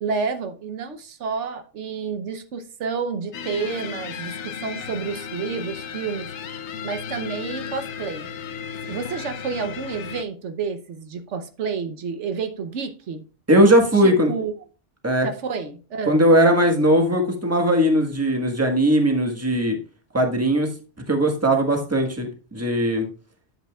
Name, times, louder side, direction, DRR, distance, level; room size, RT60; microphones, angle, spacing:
voice 1, 0.0-6.3 6.8-8.3 8.8-13.2 13.9-14.5 15.2-16.2, right 5 dB, 80° right, 8 dB, 1.1 m, -30 dB
sound 1, 3.3-10.2, left 7 dB, 75° left, 1.0 m, -34 dB
voice 2, 13.5-14.3 15.0-15.3 16.1-19.8 20.1-20.7 21.1-23.1, right 1 dB, 15° right, 3 dB, 1.3 m, -19 dB
10.5 x 7.8 x 2.3 m, 0.36 s
omnidirectional pair, 1.2 m